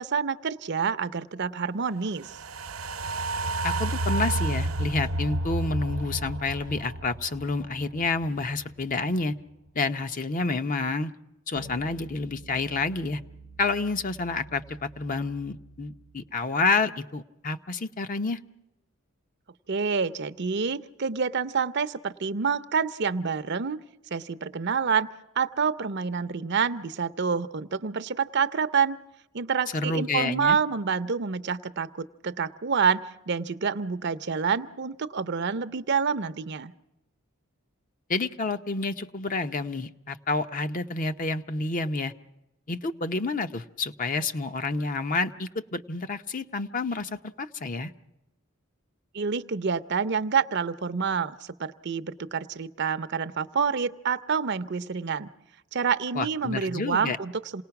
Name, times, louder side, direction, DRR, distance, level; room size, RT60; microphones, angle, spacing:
voice 1, 0.0-2.4 19.7-23.8 24.1-25.1 25.4-29.0 29.3-36.7 49.1-55.3 55.7-57.6, right 6 dB, 55° right, 13 dB, 0.7 m, -27 dB
sound 1, 2.2-8.6 8.9-9.0, right 2 dB, 90° right, 0.8 m, -31 dB
voice 2, 3.6-9.3 9.7-11.1 11.5-13.2 13.6-18.4 29.7-30.6 38.1-42.1 42.7-47.9 56.1-57.2, left 3 dB, 40° left, 9 dB, 0.7 m, -29 dB
sound 2, 11.6-16.3, right 2 dB, 80° left, 3.7 m, -49 dB
28.0 x 19.0 x 5.9 m, 0.92 s
head